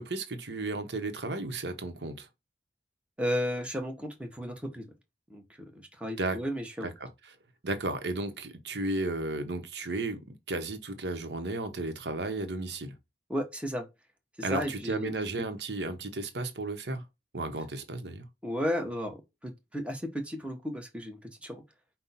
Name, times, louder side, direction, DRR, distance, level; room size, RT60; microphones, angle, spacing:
voice 1, 0.0-2.3 6.2-6.4 6.8-7.1 7.6-12.9 14.4-17.0 17.3-18.3, right 2 dB, 70° right, 1.0 m, -34 dB
voice 2, 3.2-4.9 5.3-6.9 13.3-13.9 14.4-15.1 18.4-21.6, equal, 5° right, 1.0 m, -34 dB
5.4 x 2.3 x 4.1 m
head